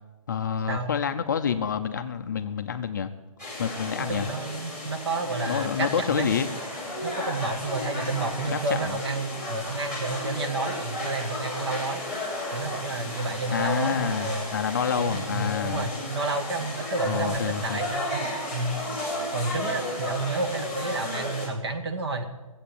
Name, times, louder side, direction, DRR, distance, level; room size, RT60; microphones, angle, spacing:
voice 1, 0.3-3.1 3.6-4.3 5.5-6.5 8.5-8.6 8.8-8.9 13.5-15.9 17.0-17.8, left 7 dB, 35° left, 8 dB, 0.6 m, -28 dB
sound 1, 3.4-21.5, left 1 dB, 5° right, 2.2 m, -34 dB
voice 2, 4.1-6.3 7.0-12.0 12.5-14.5 15.0-18.8 19.3-22.2, right 3 dB, 45° right, 7 dB, 1.7 m, -30 dB
17.5 x 8.0 x 8.5 m, 1.1 s
hypercardioid pair, 175°, 18 cm